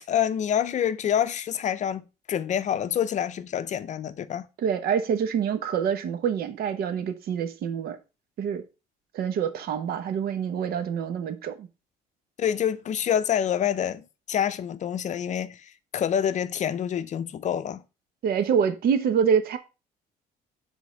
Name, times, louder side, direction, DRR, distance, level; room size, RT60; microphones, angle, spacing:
voice 1, 0.1-4.5 12.4-15.6 15.9-17.8, left 9 dB, 45° left, 0.5 m, -27 dB
voice 2, 4.6-8.0 8.4-8.6 9.1-11.7 18.2-19.6, right 7 dB, 65° right, 0.9 m, -26 dB
5.3 x 3.5 x 5.0 m
cardioid pair, 110°, 17 cm